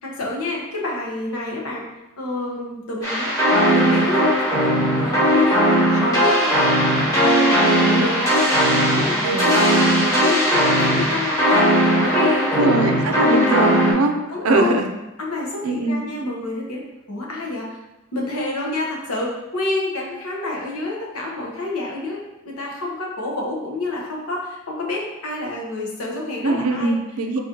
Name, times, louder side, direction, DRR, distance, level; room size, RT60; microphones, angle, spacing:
voice 1, 0.0-1.8 2.2-3.3 3.6-12.9 13.4-13.6 14.3-14.8 15.2-17.8 18.1-26.9, left 2 dB, 90° left, -2 dB, 1.0 m, -28 dB
sound 1, 3.0-13.9, equal, 15° left, 1.1 m, -18 dB
voice 2, 9.2-9.5 12.6-14.2 14.4-14.9 15.6-16.0 26.4-27.4, right 2 dB, 85° right, 6 dB, 0.5 m, -21 dB
4.1 x 2.9 x 3.7 m, 1.0 s
head